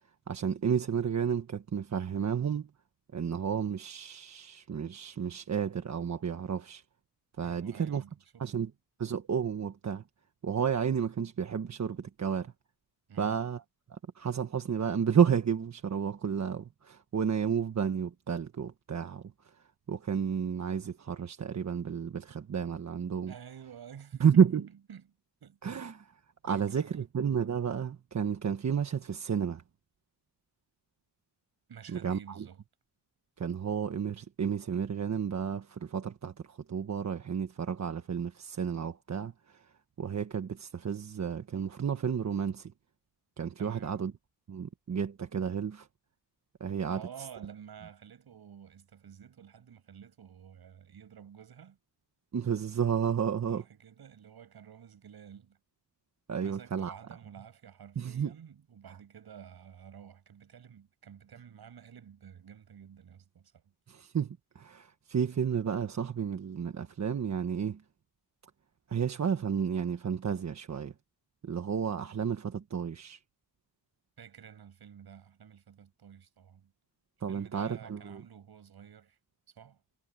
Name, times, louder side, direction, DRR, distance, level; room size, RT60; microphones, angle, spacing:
voice 1, 0.3-2.7 3.1-6.8 7.4-8.0 8.4-8.7 9.0-10.0 10.4-12.5 13.2-13.6 13.9-19.5 19.9-23.3 24.2-24.6 25.6-26.0 26.4-29.6 31.9-32.4 33.4-39.7 40.0-42.7 43.4-44.1 44.5-45.9 46.6-47.0 52.3-53.6 56.3-57.0 58.0-58.3 63.9-67.8 68.9-70.9 71.4-73.2 77.2-78.2, right 7 dB, 40° right, 1.3 m, -31 dB
voice 2, 7.4-8.7 13.1-13.4 23.3-25.9 26.5-27.1 31.7-32.6 43.6-44.0 46.9-51.8 53.5-55.6 56.4-63.7 74.2-76.7 77.3-79.2 79.5-79.8, right 8 dB, 60° right, 6.8 m, -50 dB
wide cardioid pair, 135°, 43 cm